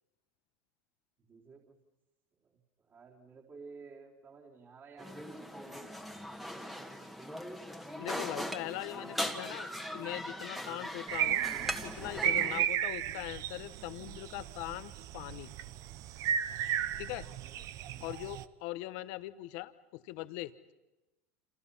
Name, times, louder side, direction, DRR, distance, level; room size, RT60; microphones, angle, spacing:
voice 1, 1.2-1.8 2.4-5.8 16.5-16.6 17.2-18.2, right 4 dB, 30° right, -3 dB, 4.1 m, -54 dB
sound 1, 5.0-12.7, equal, ahead, 1.9 m, -40 dB
voice 2, 8.0-11.4 11.8-15.5 16.9-17.3 18.0-20.5, left 17 dB, 65° left, 12 dB, 1.2 m, -41 dB
sound 2, 11.1-18.4, right 10 dB, 50° right, 0.9 m, -34 dB
28.5 x 28.0 x 5.7 m, 1.0 s
supercardioid pair, 120°, 7 cm